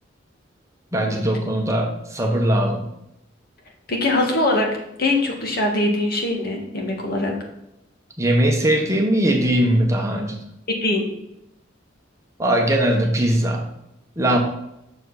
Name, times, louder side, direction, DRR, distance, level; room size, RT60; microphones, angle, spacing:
voice 1, 0.9-2.9 8.2-10.4 12.4-13.6 14.2-14.4, right 1 dB, 15° right, 1 dB, 1.1 m, -20 dB
voice 2, 3.9-4.7 5.0-7.3 10.7-11.0, left 2 dB, 50° left, 1 dB, 1.9 m, -22 dB
7.3 x 6.8 x 4.1 m, 0.85 s
head